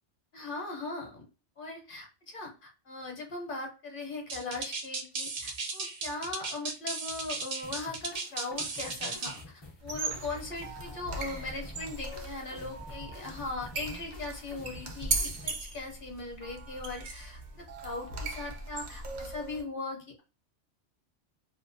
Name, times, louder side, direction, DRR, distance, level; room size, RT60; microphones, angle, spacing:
voice 1, 0.3-1.2 1.6-20.2, left 3 dB, 55° left, 2 dB, 0.9 m, -39 dB
sound 1, 4.3-9.4, right 3 dB, 50° right, 0.6 m, -36 dB
sound 2, 7.6-15.6, left 1 dB, 30° left, 0.5 m, -50 dB
sound 3, 9.8-19.6, right 3 dB, 70° right, 0.9 m, -38 dB
2.7 x 2.2 x 2.5 m, 0.33 s
omnidirectional pair, 1.2 m